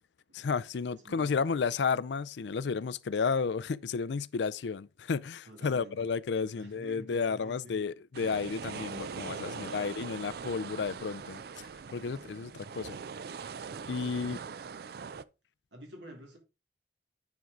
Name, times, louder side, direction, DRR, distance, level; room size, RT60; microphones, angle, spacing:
voice 1, 0.3-11.4 11.9-13.0 13.9-14.4, left 5 dB, 75° left, 0.4 m, -32 dB
voice 2, 0.9-1.7 5.5-6.1 6.4-7.9 9.5-10.0 12.2-12.4 14.0-14.3 15.7-16.4, right 1 dB, 90° right, 2.8 m, -50 dB
sound 1, 8.1-15.2, right 5 dB, 60° right, 0.4 m, -42 dB
9.4 x 4.6 x 3.7 m
head